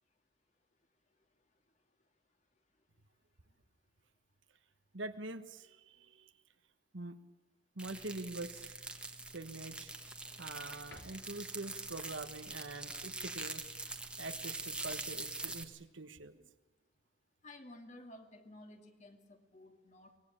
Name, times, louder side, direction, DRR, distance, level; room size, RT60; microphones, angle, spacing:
voice 1, 4.9-6.3 6.9-7.2 7.7-8.8 9.3-9.9 10.4-13.6 14.2-16.5, right 2 dB, 80° right, 9 dB, 1.4 m, -45 dB
sound 1, 7.8-15.6, right 2 dB, 5° right, 1.4 m, -44 dB
sound 2, 10.8-11.5 15.0-16.4 17.8-18.3, left 2 dB, 60° left, 3.3 m, -62 dB
voice 2, 17.4-20.2, left 1 dB, 35° left, 5 dB, 2.3 m, -54 dB
24.0 x 20.0 x 8.8 m, 1.1 s
head